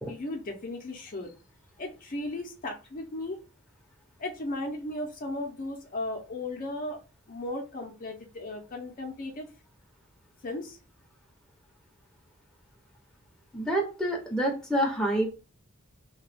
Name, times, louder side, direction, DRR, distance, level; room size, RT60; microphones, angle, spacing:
voice 1, 0.1-1.3 1.8-3.4 4.2-7.0 7.3-9.5 10.4-10.8, left 2 dB, 40° left, 3 dB, 0.5 m, -36 dB
voice 2, 13.5-15.3, right 1 dB, 5° left, -1 dB, 0.6 m, -27 dB
2.8 x 2.2 x 3.2 m, 0.32 s
head